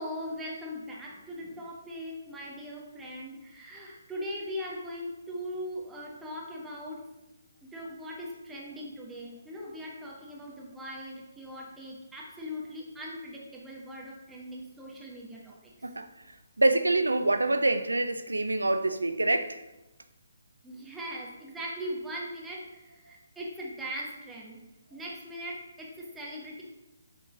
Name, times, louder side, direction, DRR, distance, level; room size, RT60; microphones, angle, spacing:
voice 1, 0.0-7.0 7.6-15.7 20.6-24.6 24.9-26.6, equal, 5° right, -4 dB, 1.1 m, -40 dB
voice 2, 16.6-19.6, right 2 dB, 75° right, 10 dB, 0.4 m, -26 dB
7.9 x 3.8 x 3.6 m, 0.96 s
figure-of-eight pair, 140°, 0 cm